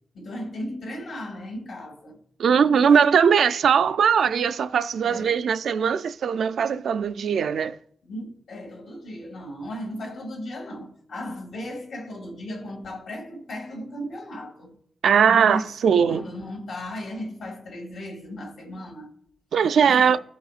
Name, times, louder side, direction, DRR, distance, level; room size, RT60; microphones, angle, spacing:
voice 1, 0.1-2.2 2.6-3.5 5.0-5.4 8.0-14.8 15.3-15.7 16.0-19.1 19.8-20.2, equal, 85° left, 2.2 m, -36 dB
voice 2, 2.4-7.8 15.0-16.3 19.5-20.2, right 7 dB, 85° right, 0.4 m, -20 dB
15.5 x 5.3 x 2.4 m
wide cardioid pair, 165°, 0 cm